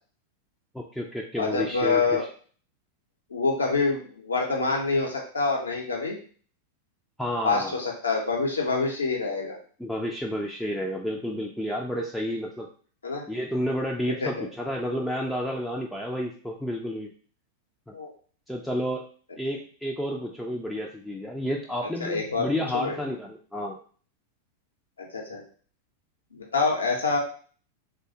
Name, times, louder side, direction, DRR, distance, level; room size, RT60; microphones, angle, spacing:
voice 1, 0.7-2.3 7.2-7.8 9.8-12.7 13.3-17.1 17.9-18.0 18.5-19.1 19.3-23.8, equal, 5° left, -1 dB, 0.3 m, -31 dB
voice 2, 1.4-2.2 3.3-6.2 7.4-9.6 13.0-13.2 14.2-14.3 17.9-18.1 22.0-23.0 25.0-25.4 26.3-27.2, left 4 dB, 75° left, 0 dB, 0.8 m, -26 dB
3.3 x 2.2 x 2.7 m, 0.43 s
figure-of-eight pair, 90°, 0 cm